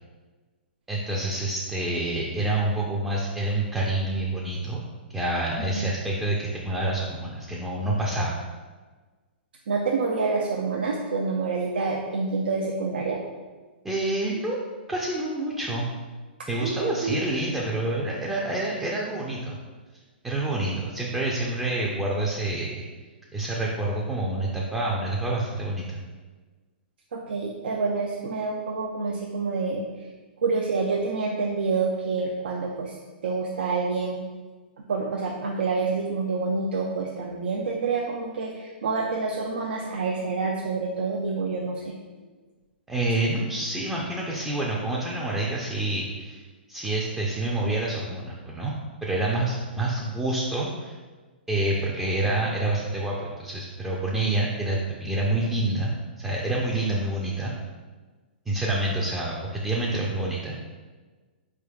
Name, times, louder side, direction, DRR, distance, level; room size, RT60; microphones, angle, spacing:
voice 1, 0.9-4.8 5.1-8.4 13.8-14.6 14.9-15.9 16.5-19.6 20.2-22.8 23.3-26.0 42.9-46.4 46.7-48.7 49.0-50.9 51.5-57.5 58.5-60.6, right 2 dB, 10° right, -4 dB, 0.4 m, -27 dB
voice 2, 5.6-5.9 9.7-13.2 16.6-17.2 27.1-29.9 30.4-32.9 33.2-34.2 34.9-41.9, right 4 dB, 70° right, -1 dB, 0.4 m, -27 dB
4.4 x 3.5 x 2.2 m, 1.4 s
figure-of-eight pair, 115°, 6 cm